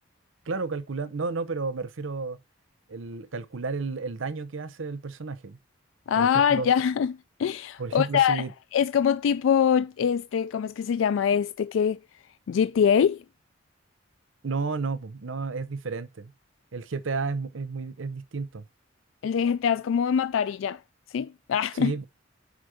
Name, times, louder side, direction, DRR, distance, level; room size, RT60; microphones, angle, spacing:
voice 1, 0.5-2.4 2.9-5.6 6.2-6.7 7.8-8.5 14.4-16.3 16.7-18.6 21.8-22.1, right 4 dB, 85° right, 0.7 m, -32 dB
voice 2, 6.1-8.4 8.7-12.0 12.5-13.2 19.2-20.8 21.1-21.9, left 7 dB, 80° left, 0.3 m, -24 dB
5.1 x 5.0 x 6.2 m
head